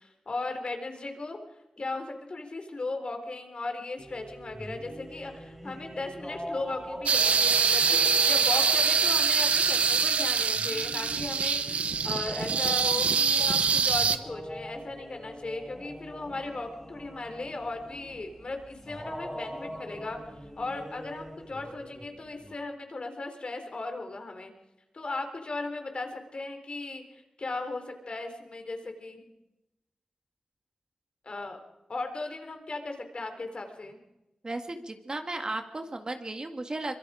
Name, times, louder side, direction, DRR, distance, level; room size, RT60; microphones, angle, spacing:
voice 1, 0.0-1.4 1.8-20.2 20.6-24.5 24.9-29.3 31.2-31.6 31.9-34.0, left 2 dB, 50° left, 6 dB, 3.8 m, -37 dB
sound 1, 4.0-22.5, equal, ahead, 3.9 m, -43 dB
sound 2, 7.1-14.2, right 5 dB, 90° right, 0.9 m, -24 dB
voice 2, 34.4-37.0, right 2 dB, 40° right, 5 dB, 2.0 m, -35 dB
24.5 x 23.0 x 5.1 m, 0.95 s
wide cardioid pair, 70°, 2 cm